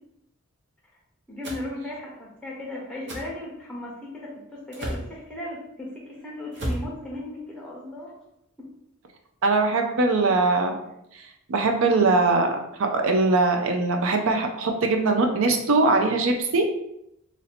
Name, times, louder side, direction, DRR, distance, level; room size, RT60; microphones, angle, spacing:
voice 1, 1.3-8.2, left 1 dB, 5° left, -3 dB, 1.0 m, -36 dB
sound 1, 1.4-1.6 3.1-3.3 4.7-5.1 6.5-6.9, right 1 dB, 50° right, 0.8 m, -31 dB
voice 2, 9.4-10.8 11.5-12.5 12.8-16.6, right 3 dB, 70° right, 4 dB, 0.5 m, -21 dB
3.0 x 2.7 x 4.1 m, 0.79 s
head